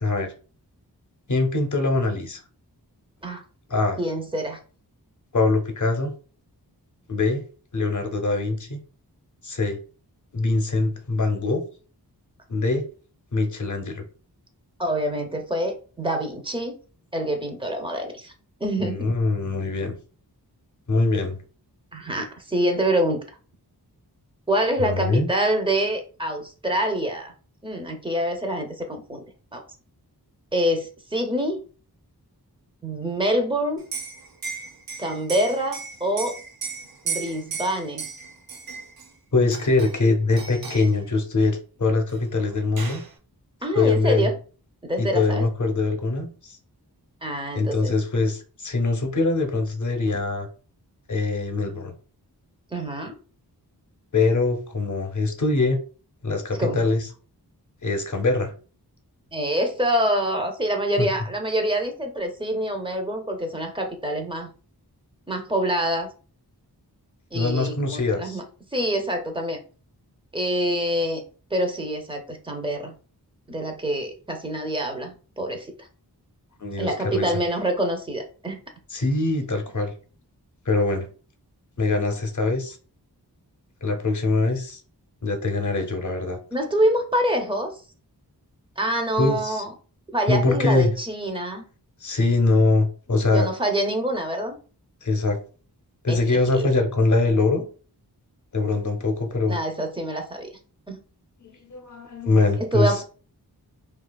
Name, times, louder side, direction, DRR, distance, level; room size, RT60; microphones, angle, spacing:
voice 1, 0.0-0.3 1.3-2.4 3.7-4.0 5.3-6.1 7.1-7.4 7.7-8.8 9.4-9.8 10.3-11.6 12.5-12.8 13.3-14.0 18.8-19.9 20.9-21.4 24.8-25.3 39.3-43.0 43.7-44.3 45.0-46.6 47.5-50.5 51.1-51.9 54.1-55.8 56.2-57.1 57.8-58.5 61.0-61.1 67.3-68.4 76.6-77.3 78.9-79.9 80.7-81.1 81.8-82.8 83.8-84.8 85.2-86.4 89.2-89.6 90.3-90.9 92.0-93.5 95.0-95.4 96.0-97.6 98.5-99.6 101.4-103.0, left 3 dB, 50° left, 5 dB, 0.7 m, -23 dB
voice 2, 4.0-4.6 14.8-16.8 17.1-18.3 18.6-19.1 21.9-23.2 24.5-27.3 27.6-29.2 29.5-29.6 30.5-31.6 32.8-33.8 35.0-36.4 37.0-38.1 43.6-44.4 44.8-45.5 47.2-47.9 52.7-53.1 56.6-56.8 59.3-64.5 65.3-66.1 67.3-68.4 68.7-69.6 70.3-71.2 71.5-72.9 73.5-75.7 76.8-78.6 86.5-87.8 88.8-89.7 90.1-91.6 93.2-94.6 96.1-96.7 99.5-100.5 100.9-101.0 102.6-103.0, right 1 dB, 15° right, 4 dB, 0.5 m, -26 dB
Liquid, 33.8-39.1 39.5-40.1 40.4-40.9 42.1-42.2 42.5-43.1, right 5 dB, 65° right, 0.5 m, -35 dB
2.7 x 2.4 x 2.2 m, 0.38 s
wide cardioid pair, 60°, 40 cm